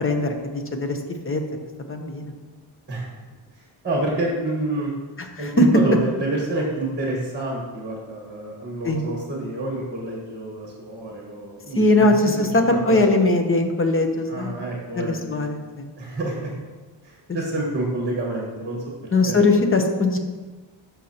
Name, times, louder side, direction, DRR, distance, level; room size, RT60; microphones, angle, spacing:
voice 1, 0.0-1.4 1.9-2.3 5.2-5.7 8.8-9.0 11.7-14.5 14.9-15.9 17.3-17.6 19.1-20.2, left 2 dB, 25° left, 5 dB, 0.9 m, -21 dB
voice 2, 3.8-4.9 5.4-12.3 14.3-15.5 16.0-16.5 17.0-18.8 19.2-19.4, right 2 dB, 20° right, -2 dB, 1.5 m, -28 dB
12.5 x 5.5 x 2.9 m, 1.3 s
wide cardioid pair, 135°, 50 cm